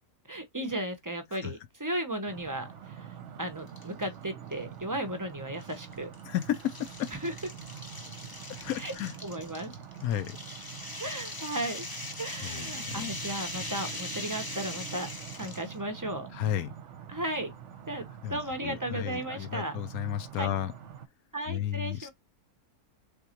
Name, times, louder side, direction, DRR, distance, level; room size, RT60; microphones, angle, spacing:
voice 1, 0.3-2.7 3.0-3.1 3.4-6.1 7.2-7.3 8.8-8.9 9.2-9.7 11.0-11.9 12.2-15.1 15.4-16.3 17.1-17.5 17.9-19.7 20.4-20.5 21.3-22.1, right 1 dB, 20° right, 0.6 m, -35 dB
sound 1, 2.3-21.1, right 8 dB, 60° right, 1.0 m, -45 dB
sound 2, 3.7-4.1 4.5-4.6 5.6-15.7, left 2 dB, 20° left, 0.7 m, -41 dB
voice 2, 6.3-7.1 8.6-9.1 10.0-10.4 12.4-13.1 16.3-16.7 18.2-20.7 21.5-22.1, left 11 dB, 75° left, 1.1 m, -33 dB
3.9 x 3.5 x 2.9 m
omnidirectional pair, 1.6 m